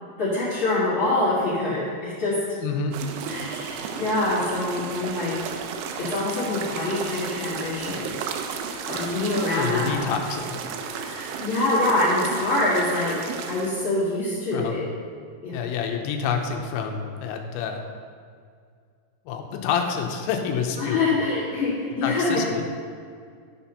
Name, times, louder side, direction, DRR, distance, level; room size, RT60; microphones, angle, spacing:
voice 1, 0.2-2.4 3.3-5.3 6.0-8.1 8.8-10.0 10.9-13.2 13.5-14.8 15.4-15.6 20.8-22.4, left 2 dB, 60° left, -11 dB, 1.3 m, -25 dB
voice 2, 2.6-2.9 9.5-10.6 14.5-14.8 15.5-17.8 19.3-21.1 22.0-22.6, left 6 dB, 85° left, 3 dB, 2.9 m, -28 dB
sound 1, 2.9-13.7, right 6 dB, 80° right, 2.9 m, -33 dB
12.5 x 4.4 x 5.5 m, 2.1 s
omnidirectional pair, 5.6 m